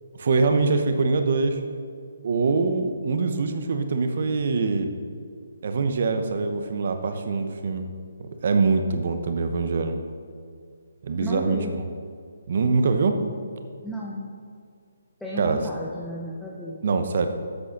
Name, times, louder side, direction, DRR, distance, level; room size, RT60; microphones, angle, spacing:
voice 1, 0.1-1.6 2.2-4.9 5.6-7.9 8.2-10.0 11.0-11.6 12.5-13.2 15.4-15.6 16.8-17.3, right 4 dB, 55° right, 7 dB, 0.9 m, -23 dB
voice 2, 11.2-11.7 13.8-14.3 15.2-16.8, equal, 5° left, -6 dB, 0.7 m, -33 dB
8.0 x 6.3 x 5.9 m, 2.2 s
hypercardioid pair, 160°, 0 cm